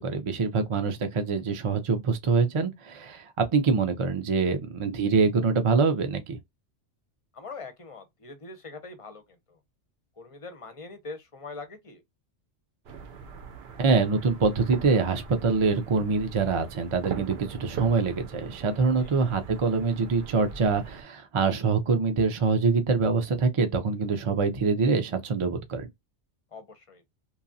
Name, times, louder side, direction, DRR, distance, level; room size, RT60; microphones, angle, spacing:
voice 1, 0.0-6.4 13.8-25.9, right 4 dB, 45° right, 0.4 m, -25 dB
voice 2, 7.3-9.2 9.5-9.6 10.2-12.0 19.0-19.2 26.5-27.0, left 3 dB, 40° left, 0.5 m, -42 dB
sound 1, 12.9-21.0, right 6 dB, 65° right, 0.8 m, -41 dB
2.9 x 2.3 x 2.6 m
omnidirectional pair, 1.2 m